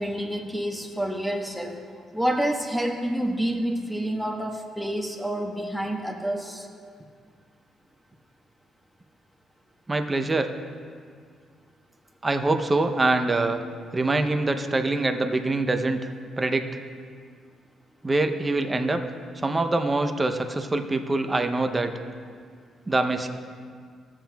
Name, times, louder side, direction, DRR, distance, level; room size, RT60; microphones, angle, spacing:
voice 1, 0.0-1.7 2.1-6.7, right 1 dB, ahead, 2 dB, 1.1 m, -28 dB
voice 2, 9.9-10.5 12.2-13.6 13.9-16.0 16.4-16.7 18.0-19.0 19.4-21.9 22.9-23.3, right 2 dB, 20° right, 6 dB, 0.6 m, -24 dB
14.0 x 7.4 x 2.3 m, 2.1 s
cardioid pair, 90°, 0 cm